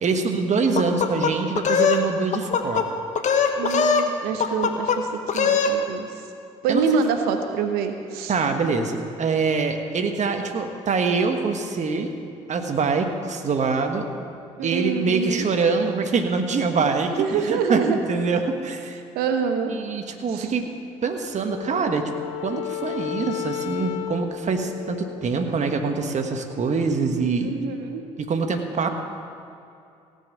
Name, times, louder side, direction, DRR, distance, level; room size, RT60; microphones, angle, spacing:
voice 1, 0.0-2.9 6.7-6.8 8.3-12.1 12.5-14.1 14.6-19.0 19.7-20.7 21.0-22.1 22.4-27.6 28.2-28.9, right 4 dB, 45° right, 5 dB, 1.5 m, -24 dB
sound 1, 0.8-2.0 2.3-2.9 3.2-4.1 4.4-5.0 5.3-5.7, left 6 dB, 50° left, 1.2 m, -21 dB
voice 2, 3.6-5.1 5.3-6.1 6.6-8.3 14.6-15.5 17.2-18.0 19.1-19.7 20.3-20.5 27.4-28.0, right 6 dB, 75° right, 6 dB, 0.9 m, -25 dB
Wind instrument woodwind instrument, 21.5-25.9, left 12 dB, 90° left, 0.5 m, -34 dB
17.0 x 5.6 x 7.8 m, 2.6 s
hypercardioid pair, 55°, 16 cm